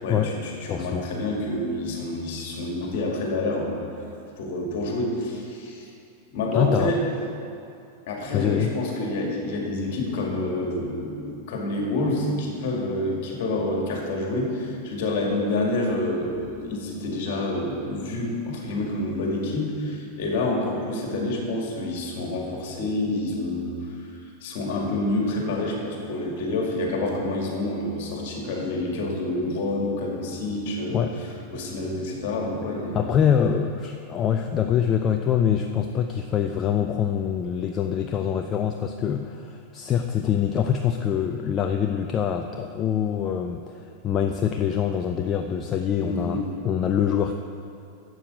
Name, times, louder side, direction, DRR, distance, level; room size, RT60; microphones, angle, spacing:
voice 1, 0.0-3.8 4.4-5.9 6.3-7.0 8.1-23.7 24.4-31.0 31.5-33.0 46.0-46.4, left 2 dB, 50° left, 0 dB, 2.1 m, -28 dB
voice 2, 0.7-1.1 6.5-7.0 8.3-8.7 30.9-31.1 32.9-47.3, left 8 dB, 30° left, 5 dB, 0.4 m, -24 dB
11.5 x 7.7 x 5.1 m, 2.5 s
figure-of-eight pair, 90°, 0 cm